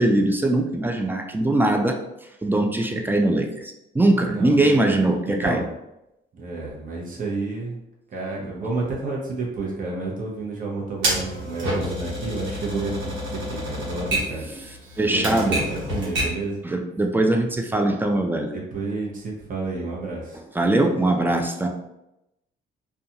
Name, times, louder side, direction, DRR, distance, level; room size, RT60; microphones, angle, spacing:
voice 1, 0.0-2.0 2.4-5.6 8.4-8.5 15.0-15.6 16.6-18.5 20.6-21.7, right 2 dB, 10° right, 3 dB, 0.3 m, -21 dB
voice 2, 4.2-4.8 5.3-5.7 6.3-7.8 8.1-14.4 15.0-16.6 18.5-20.4, right 3 dB, 45° right, -3 dB, 0.8 m, -30 dB
Typewriter, 11.0-16.5, right 1 dB, 75° right, 1.0 m, -28 dB
2.5 x 2.2 x 2.7 m, 0.88 s
cardioid pair, 90°, 20 cm